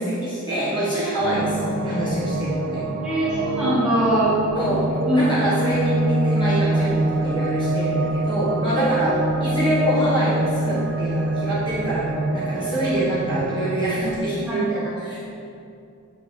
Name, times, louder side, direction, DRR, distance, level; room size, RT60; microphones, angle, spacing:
voice 1, 0.0-2.8 4.5-15.2, right 1 dB, 20° left, -10 dB, 1.5 m, -25 dB
sound 1, 1.2-14.2, right 2 dB, 55° right, 0.4 m, -25 dB
voice 2, 3.0-4.4 5.1-5.3 8.7-8.8 14.5-15.0, right 1 dB, 5° right, -11 dB, 1.6 m, -22 dB
7.1 x 6.2 x 3.4 m, 2.6 s
head